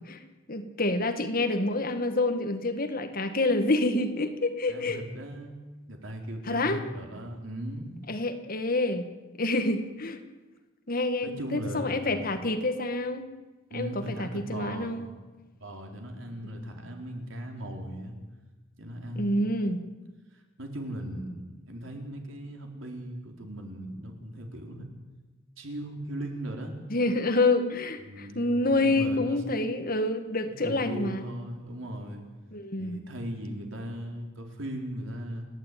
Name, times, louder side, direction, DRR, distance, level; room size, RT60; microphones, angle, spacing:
voice 1, 0.5-5.0 6.5-6.8 8.1-9.1 9.4-10.2 10.9-13.3 13.7-15.1 19.2-19.8 26.9-31.2 32.5-33.0, left 2 dB, 45° left, 7 dB, 1.9 m, -27 dB
voice 2, 4.7-5.5 5.9-7.9 11.2-12.4 13.7-15.1 15.6-18.2 18.8-19.4 20.3-24.9 25.6-26.7 28.0-29.4 30.4-32.2 32.8-35.5, right 1 dB, 75° right, 2 dB, 4.2 m, -38 dB
29.5 x 12.0 x 9.4 m, 1.2 s
head